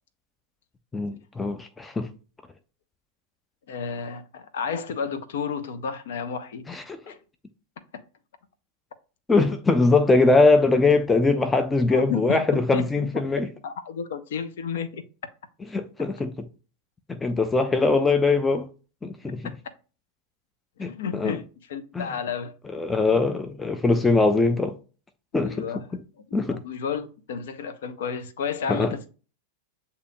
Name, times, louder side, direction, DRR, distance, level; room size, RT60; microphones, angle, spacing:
voice 1, 0.9-2.1 6.7-7.0 9.3-13.5 15.7-16.5 17.1-18.7 19.0-19.4 20.8-21.4 21.9-22.1 22.7-24.8 25.3-25.7 26.3-26.6 28.7-29.0, left 3 dB, 10° left, 0.4 m, -22 dB
voice 2, 3.7-6.6 7.1-7.2 11.9-12.9 13.6-15.0 19.4-19.5 20.8-21.4 21.7-22.6 25.4-25.8 26.3-29.1, left 6 dB, 60° left, 0.6 m, -32 dB
8.1 x 2.9 x 2.2 m
figure-of-eight pair, 90°, 0 cm